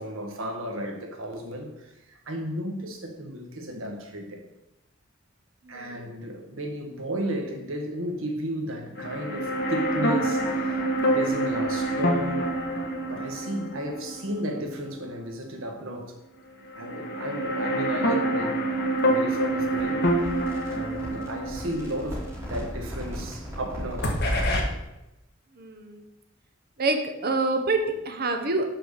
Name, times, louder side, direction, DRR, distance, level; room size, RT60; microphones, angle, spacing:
voice 1, 0.0-4.4 5.7-12.5 13.1-16.1 16.7-18.6 19.0-20.1 20.7-24.1, equal, 80° right, 1.4 m, -34 dB
voice 2, 5.7-6.0 25.6-26.0 26.8-28.7, right 2 dB, 50° right, 1.0 m, -27 dB
sound 1, 9.0-15.2 15.5-15.6 16.7-23.7 24.0-24.6, right 1 dB, 55° left, 1.3 m, -27 dB
sound 2, 19.8-24.9, equal, 15° right, 3.0 m, -37 dB
6.1 x 4.9 x 6.6 m
head